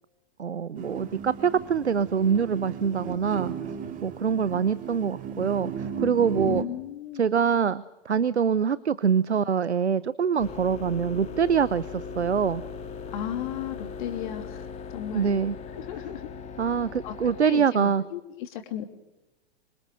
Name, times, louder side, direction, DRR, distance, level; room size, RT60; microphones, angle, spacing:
voice 1, 0.4-3.5 4.0-6.6 7.2-12.6 15.1-15.5 16.6-18.0, right 7 dB, 75° right, 19 dB, 0.8 m, -24 dB
sound 1, 0.8-6.6, right 7 dB, 25° right, 2.5 m, -36 dB
voice 2, 6.4-7.2 13.1-15.4 15.7-16.3 17.0-17.1 17.4-18.8, left 10 dB, 45° left, 6 dB, 3.1 m, -35 dB
sound 2, 10.4-17.4, left 5 dB, 20° left, 2.6 m, -39 dB
26.0 x 25.0 x 6.5 m, 1.0 s
figure-of-eight pair, 105°, 33 cm